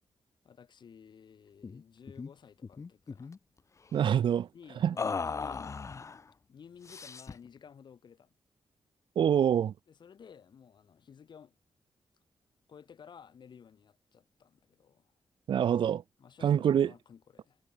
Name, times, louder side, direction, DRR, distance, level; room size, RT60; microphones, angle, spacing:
voice 1, 0.4-3.3 4.5-5.7 6.5-8.3 9.9-11.6 12.7-15.1 16.2-17.6, left 7 dB, 60° left, 6.6 m, -54 dB
sound 1, 1.6-1.8 2.1-2.3 2.6-3.4 5.0-6.2 6.8-7.5, left 5 dB, 35° left, 1.2 m, -37 dB
voice 2, 3.9-4.5 4.8-4.9 9.2-9.7 15.5-16.0 16.4-16.9, right 9 dB, 70° right, 0.6 m, -25 dB
wide cardioid pair, 130°, 9 cm